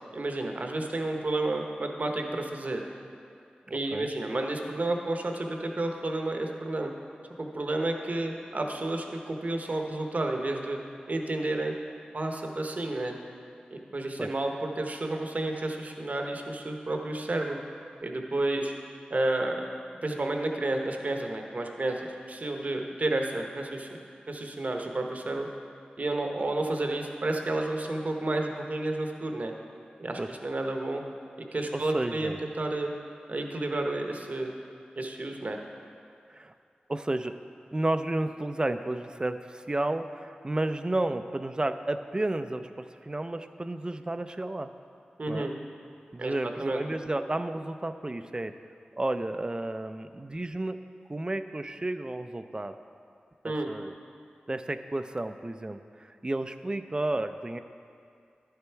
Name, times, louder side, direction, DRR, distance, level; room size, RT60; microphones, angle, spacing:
voice 1, 0.1-2.8 3.7-6.9 7.4-10.8 11.1-11.7 12.1-13.1 13.7-17.6 18.0-18.7 19.1-19.6 20.0-23.9 24.3-25.5 26.0-29.5 30.0-31.0 31.4-32.9 33.3-34.5 35.0-35.6 45.2-45.5 46.2-46.8 53.4-53.7, right 2 dB, 55° right, 3 dB, 0.9 m, -31 dB
voice 2, 3.7-4.1 14.2-14.3 30.2-30.3 31.7-32.4 36.3-36.5 36.9-37.4 37.7-44.7 45.3-45.5 46.1-48.5 49.0-50.8 51.1-52.8 53.4-53.9 54.5-57.6, right 2 dB, 25° right, 10 dB, 0.4 m, -32 dB
11.0 x 6.9 x 4.5 m, 2.4 s
wide cardioid pair, 55°, 3 cm